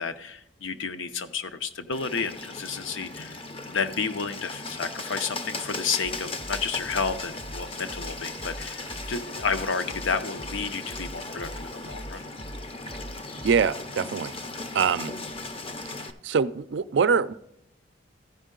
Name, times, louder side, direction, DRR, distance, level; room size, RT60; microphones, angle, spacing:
voice 1, 0.0-3.4 3.6-12.2, left 5 dB, 75° left, 0.7 m, -31 dB
Bird, 1.9-16.1, left 2 dB, 30° left, 0.5 m, -37 dB
sound 1, 6.0-13.7, right 1 dB, 15° right, 0.5 m, -42 dB
voice 2, 13.4-14.3 14.7-15.1 16.2-17.3, right 6 dB, 60° right, 0.4 m, -23 dB
15.0 x 5.4 x 3.7 m
head